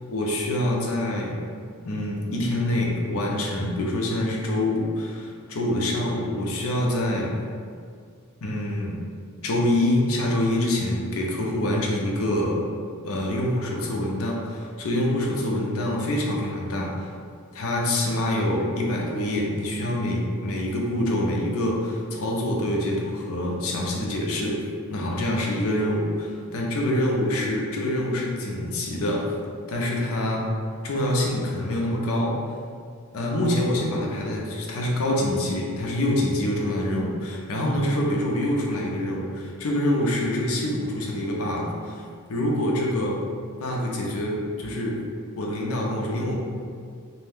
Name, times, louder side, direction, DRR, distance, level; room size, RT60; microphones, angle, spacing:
voice 1, 0.1-1.4 1.8-7.3 8.4-9.0 9.4-12.6 13.0-16.9 17.5-24.6 24.9-29.3 29.7-30.5 30.8-32.4 33.1-42.0 42.3-43.2 43.6-45.0 45.3-46.4, left 1 dB, 70° left, -1 dB, 0.5 m, -25 dB
2.5 x 2.2 x 3.4 m, 2.2 s
head